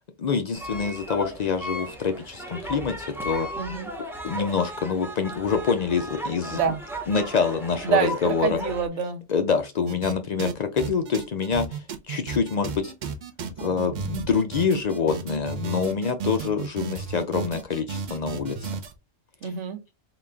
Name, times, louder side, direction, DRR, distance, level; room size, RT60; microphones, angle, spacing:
voice 1, 0.2-3.5 4.2-6.6 7.1-8.6 9.3-12.9 13.6-18.7, left 5 dB, 70° left, 0.4 m, -26 dB
sound 1, 0.5-8.9, equal, 5° right, 0.5 m, -36 dB
voice 2, 3.6-3.9 6.5-6.8 7.8-9.2 19.4-19.8, right 6 dB, 70° right, 1.1 m, -26 dB
sound 2, 9.9-10.1 10.4-18.9, right 6 dB, 55° right, 0.5 m, -33 dB
3.9 x 2.4 x 3.3 m
omnidirectional pair, 1.3 m